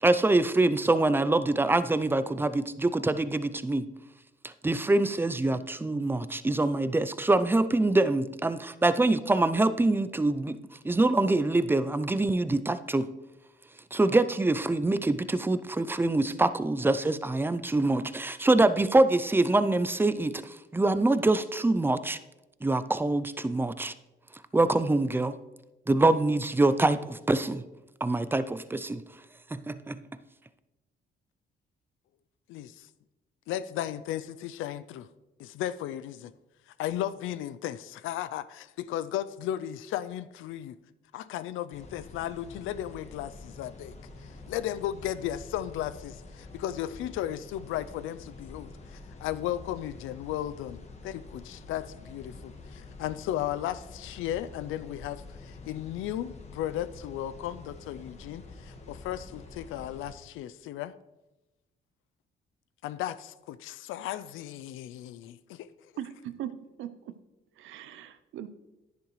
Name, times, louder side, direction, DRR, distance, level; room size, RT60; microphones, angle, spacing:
voice 1, 0.0-3.9 4.4-10.6 10.8-13.1 13.9-22.2 22.6-23.9 24.5-25.4 25.9-27.6 28.0-29.0 29.5-30.0, right 2 dB, 10° right, 13 dB, 0.5 m, -25 dB
voice 2, 32.5-32.9 33.5-35.1 35.4-36.3 36.7-40.8 41.1-61.0 62.8-65.9, left 12 dB, 90° left, 15 dB, 0.5 m, -35 dB
sound 1, 41.7-60.2, left 3 dB, 35° left, 1.6 m, -47 dB
voice 3, 66.0-66.5 66.8-66.9 67.6-68.5, right 11 dB, 85° right, 12 dB, 0.7 m, -39 dB
10.5 x 10.5 x 3.2 m, 1.0 s
cardioid pair, 90°, 20 cm